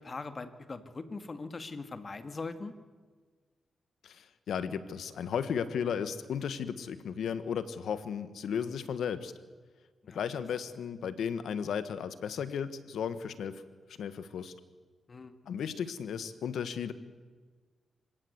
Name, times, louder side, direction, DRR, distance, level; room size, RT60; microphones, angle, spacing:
voice 1, 0.0-2.7 10.0-10.3 15.1-15.3, left 3 dB, 45° left, 9 dB, 2.1 m, -41 dB
voice 2, 4.0-9.3 10.1-13.6 14.0-14.5 15.5-16.9, left 7 dB, 85° left, 12 dB, 1.5 m, -35 dB
26.0 x 17.0 x 8.1 m, 1.5 s
cardioid pair, 65°, 0 cm